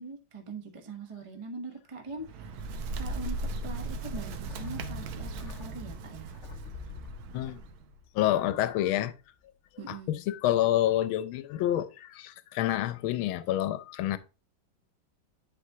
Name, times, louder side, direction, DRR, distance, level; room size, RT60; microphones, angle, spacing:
voice 1, 0.0-2.5 3.0-6.3 9.8-10.2, right 3 dB, 30° right, 0.5 m, -42 dB
Bird, 2.1-7.8, right 2 dB, 85° right, 1.6 m, -37 dB
sound 1, 4.5-9.1 9.4-9.5, left 7 dB, 65° left, 0.7 m, -47 dB
voice 2, 8.1-9.1 9.9-14.2, left 12 dB, 85° left, 1.4 m, -28 dB
10.5 x 4.8 x 2.7 m
omnidirectional pair, 2.2 m